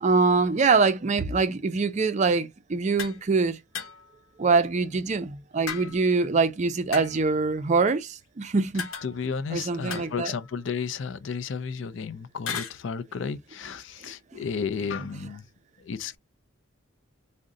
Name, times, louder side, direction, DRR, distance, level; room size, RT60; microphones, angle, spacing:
voice 1, 0.0-3.6 4.4-8.9 9.5-10.3 14.0-14.1 14.4-14.5, right 4 dB, 35° right, 0.4 m, -24 dB
sound 1, 3.0-3.2 3.7-4.2 5.7-6.2 6.9-7.4 8.8-9.4 9.9-10.7 12.5-12.8, left 6 dB, 85° left, 0.9 m, -36 dB
voice 2, 9.0-15.5 15.8-16.2, left 6 dB, 65° left, 0.4 m, -33 dB
3.7 x 2.1 x 3.6 m
head